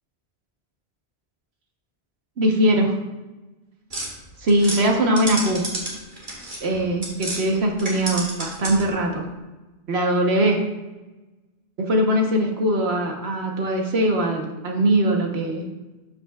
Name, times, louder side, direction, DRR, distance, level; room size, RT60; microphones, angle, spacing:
voice 1, 2.4-2.9 4.4-5.6 6.6-9.2 9.9-10.6 11.8-15.6, right 1 dB, 75° right, 2 dB, 1.4 m, -21 dB
sound 1, 3.9-7.4 7.7-9.0, right 1 dB, 50° right, 2.0 m, -31 dB
12.0 x 5.6 x 2.4 m, 1.1 s
omnidirectional pair, 1.1 m